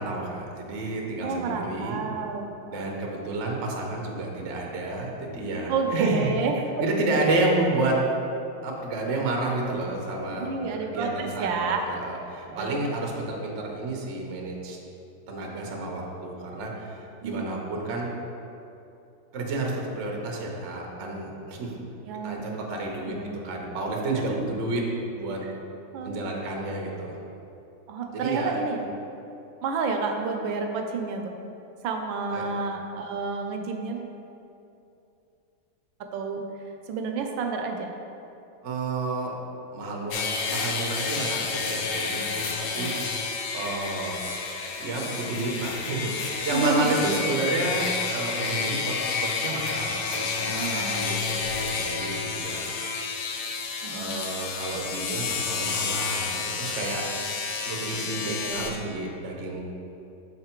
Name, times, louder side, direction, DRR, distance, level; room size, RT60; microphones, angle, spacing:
voice 1, 0.0-2.0 2.6-6.4 6.8-7.9 8.6-10.5 10.8-14.8 15.3-18.1 19.3-21.8 22.2-23.2 23.4-24.8 25.1-25.4 26.0-27.2 28.1-28.5 32.3-32.5 38.6-39.3 39.7-43.2 43.5-44.2 44.8-52.7 53.9-56.2 56.6-57.0 57.6-59.6, right 2 dB, 60° right, -1 dB, 0.7 m, -30 dB
voice 2, 1.2-2.9 5.7-6.6 10.4-12.0 12.5-12.8 17.2-17.5 22.0-22.6 23.1-23.3 24.3-24.4 25.4-25.5 25.9-26.2 27.9-28.9 29.6-31.3 31.8-34.1 36.1-36.4 36.9-37.9 42.1-42.2 42.8-42.9 46.5-47.0 50.5-51.0 53.8-54.1 58.1-58.8, right 4 dB, 75° right, 3 dB, 1.2 m, -30 dB
sound 1, 40.1-58.7, left 5 dB, 80° left, 0.8 m, -30 dB
6.6 x 4.2 x 4.4 m, 2.8 s
omnidirectional pair, 2.3 m